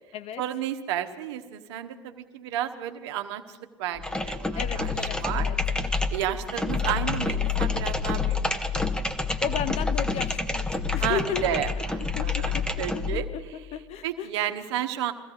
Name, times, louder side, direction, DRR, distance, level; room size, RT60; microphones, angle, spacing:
voice 1, 0.4-5.5 5.8-8.9 11.0-13.3 14.0-15.1, right 11 dB, 65° right, 7 dB, 1.3 m, -32 dB
sound 1, 3.9-13.3, left 4 dB, 5° left, 1.0 m, -28 dB
voice 2, 4.5-5.6 9.4-11.6 12.1-14.3, left 10 dB, 45° left, 14 dB, 1.0 m, -34 dB
22.5 x 15.5 x 4.1 m, 1.3 s
figure-of-eight pair, 80°, 15 cm